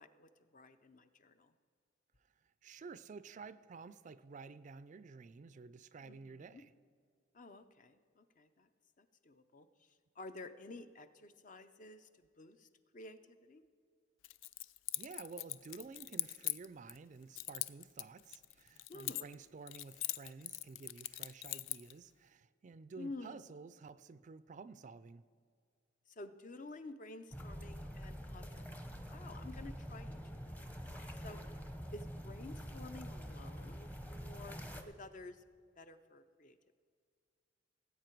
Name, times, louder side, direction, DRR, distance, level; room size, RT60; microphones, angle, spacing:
voice 1, 0.0-1.5 6.0-6.6 7.3-8.7 9.0-9.7 10.2-12.7 12.9-13.6 18.9-19.3 23.0-23.4 26.1-28.7 29.1-30.2 30.5-30.6 31.2-31.6 31.9-34.6 34.9-35.4 35.8-36.6, left 2 dB, 40° left, 10 dB, 0.6 m, -51 dB
voice 2, 2.6-6.7 14.9-25.3, right 4 dB, 40° right, 15 dB, 0.3 m, -52 dB
Keys jangling, 14.2-17.0 17.4-19.4 19.7-21.9, left 15 dB, 90° left, 0.4 m, -41 dB
sound 1, 27.3-34.8, equal, 10° left, 0.7 m, -46 dB
18.0 x 8.4 x 4.5 m, 2.1 s
head